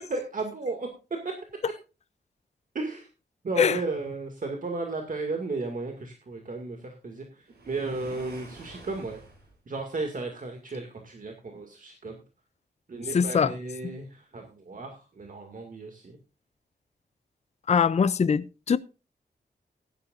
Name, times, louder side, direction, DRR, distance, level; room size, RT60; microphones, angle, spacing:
voice 1, 0.1-0.9 1.2-1.3 2.7-3.1 3.4-9.2 9.7-12.2 12.9-16.2, right 3 dB, 50° right, 2.1 m, -34 dB
Waves surf, 7.4-9.6, right 2 dB, 70° right, 6.8 m, -48 dB
voice 2, 13.1-13.5 17.7-18.8, left 6 dB, 40° left, 0.4 m, -22 dB
16.5 x 11.5 x 2.5 m
wide cardioid pair, 165°, 18 cm